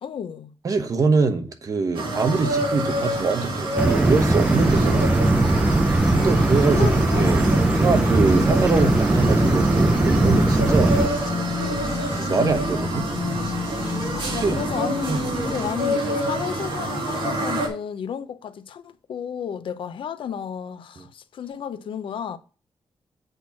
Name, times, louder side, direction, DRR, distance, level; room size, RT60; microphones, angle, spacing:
voice 1, 0.0-0.5 6.8-7.4 14.1-22.4, left 8 dB, 90° left, 0.7 m, -32 dB
voice 2, 0.6-5.1 6.1-6.9 7.1-7.4 7.7-10.9 12.1-13.1 14.3-14.6 15.1-15.3 21.0-21.1, right 4 dB, 40° right, 1.0 m, -23 dB
sound 1, 1.9-17.7, right 1 dB, 75° right, 2.2 m, -27 dB
sound 2, 3.8-11.1, right 2 dB, 15° right, 0.7 m, -19 dB
sound 3, 4.6-15.7, left 4 dB, 45° left, 1.7 m, -32 dB
7.9 x 4.5 x 5.7 m
wide cardioid pair, 180°, 9 cm